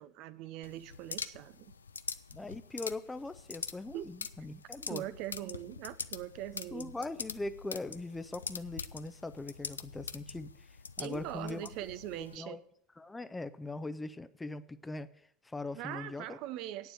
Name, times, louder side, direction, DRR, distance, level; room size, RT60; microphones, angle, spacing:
voice 1, 0.0-1.7 3.9-4.1 4.9-6.9 11.0-12.6 15.7-16.9, right 13 dB, 60° right, 0.5 m, -41 dB
sound 1, 0.6-12.4, left 5 dB, 90° left, 0.4 m, -44 dB
voice 2, 2.3-5.0 6.7-10.7 11.0-11.7 12.1-12.6 13.0-15.1 15.4-16.4, left 2 dB, 15° left, 0.7 m, -41 dB
9.0 x 7.2 x 7.8 m
hypercardioid pair, 70°, 0 cm